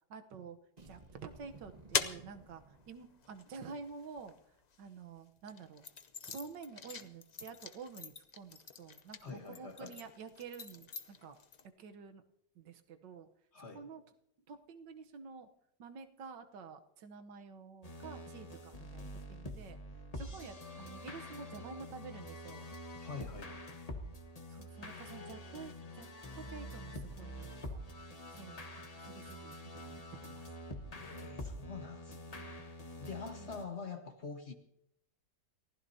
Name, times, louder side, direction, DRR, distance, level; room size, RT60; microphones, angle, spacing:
voice 1, 0.1-0.6 0.9-4.3 4.8-5.9 6.3-11.4 11.8-12.2 12.6-13.3 13.7-14.0 14.5-15.5 15.8-19.8 20.2-22.7 24.5-26.1 26.4-27.9 28.3-28.7 29.0-30.5 33.3-33.6, right 5 dB, 85° right, 7 dB, 1.7 m, -49 dB
sound 1, 0.8-3.5, right 2 dB, 25° right, 1.3 m, -57 dB
sound 2, 1.2-4.8 5.4-11.7, left 5 dB, 60° left, 0.4 m, -43 dB
voice 2, 9.2-10.0 13.5-13.9 23.0-23.8 30.9-32.5 33.0-34.5, left 5 dB, 40° left, 5 dB, 1.6 m, -46 dB
sound 3, 17.8-33.6, left 1 dB, 25° left, 1.2 m, -46 dB
29.5 x 15.5 x 2.8 m, 0.75 s
omnidirectional pair, 1.9 m